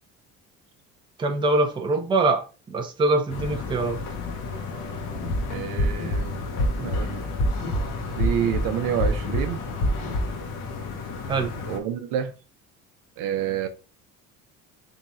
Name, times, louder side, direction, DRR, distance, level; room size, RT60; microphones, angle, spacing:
voice 1, 1.2-4.0 11.3-11.5, right 3 dB, 15° right, 0.5 m, -23 dB
sound 1, 3.3-11.8, left 4 dB, 80° left, 1.0 m, -34 dB
sound 2, 5.2-5.4 5.8-6.2 6.6-7.0 7.4-7.8 8.2-8.6 9.0-9.4 9.8-10.2, equal, 40° left, 1.0 m, -24 dB
voice 2, 5.5-6.5 6.8-7.3 8.2-9.6 11.7-12.3 13.2-13.7, right 9 dB, 90° right, 0.8 m, -28 dB
3.7 x 2.4 x 4.0 m
cardioid pair, 150°, 31 cm